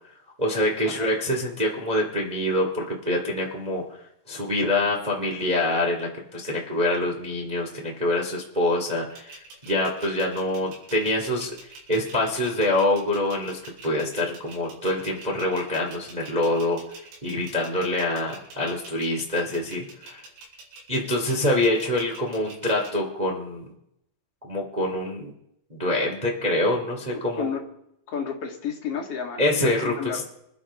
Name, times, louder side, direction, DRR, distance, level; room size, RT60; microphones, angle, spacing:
voice 1, 0.4-3.9 4.3-16.8 17.2-20.2 20.9-23.6 24.4-25.3 25.7-27.5 29.4-30.2, left 1 dB, 40° right, -1 dB, 0.5 m, -25 dB
sound 1, 9.1-22.9, right 3 dB, 90° right, 7.0 m, -46 dB
voice 2, 28.1-30.2, left 7 dB, 50° left, 0 dB, 2.0 m, -32 dB
26.5 x 11.0 x 3.7 m, 0.79 s
omnidirectional pair, 5.7 m